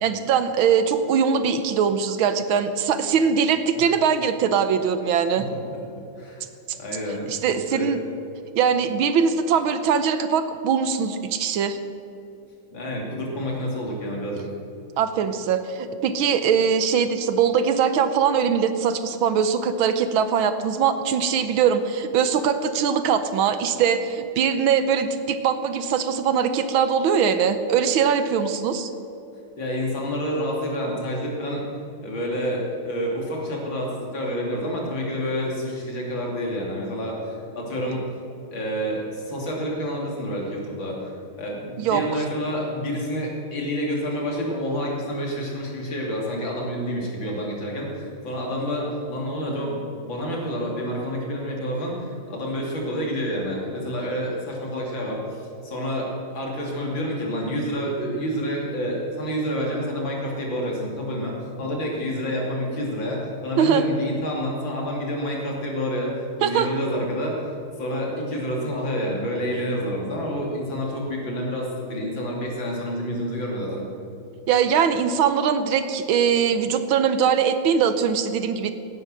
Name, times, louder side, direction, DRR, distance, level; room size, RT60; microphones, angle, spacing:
voice 1, 0.0-5.4 7.3-8.0 8.5-11.8 15.0-28.9 41.8-42.0 63.6-63.8 66.4-66.7 74.5-78.7, right 7 dB, 75° right, 10 dB, 1.5 m, -21 dB
voice 2, 5.4-5.8 6.2-6.4 6.8-7.9 12.7-14.5 29.6-31.6 32.0-38.1 38.5-66.1 66.4-73.8, equal, 60° left, -2 dB, 3.6 m, -28 dB
17.5 x 9.7 x 6.3 m, 2.9 s
omnidirectional pair, 2.4 m